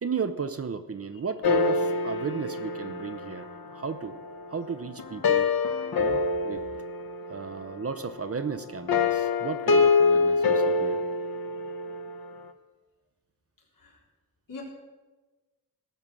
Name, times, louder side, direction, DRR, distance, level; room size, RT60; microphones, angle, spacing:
voice 1, 0.0-4.1 4.5-5.5 6.0-6.6 7.3-11.0, right 5 dB, 40° right, 12 dB, 0.7 m, -34 dB
sound 1, 1.4-4.4 5.0-7.7 8.9-12.2, left 4 dB, 90° left, 0.9 m, -26 dB
voice 2, 11.5-11.8 13.7-14.0 14.5-14.6, left 4 dB, 65° left, -2 dB, 3.6 m, -44 dB
18.0 x 7.1 x 6.1 m, 1.2 s
wide cardioid pair, 130°, 35 cm